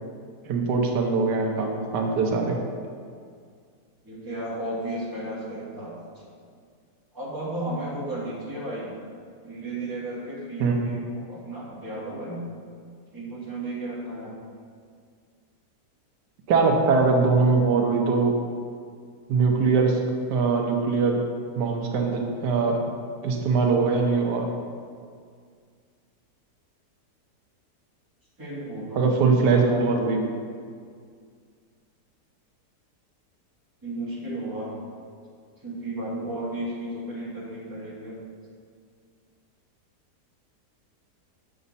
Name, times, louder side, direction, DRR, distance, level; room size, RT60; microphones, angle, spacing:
voice 1, 0.5-2.6 10.6-10.8 16.5-18.4 19.3-20.0 20.3-21.2 21.6-22.8 23.2-24.5 28.9-30.2, right 4 dB, 90° right, 2 dB, 1.4 m, -22 dB
voice 2, 4.0-6.2 7.1-8.9 9.4-12.4 13.1-14.3 28.4-30.1 33.8-34.7 35.6-38.1, right 1 dB, 15° right, -7 dB, 1.8 m, -34 dB
6.9 x 6.3 x 4.1 m, 2.1 s
omnidirectional pair, 1.8 m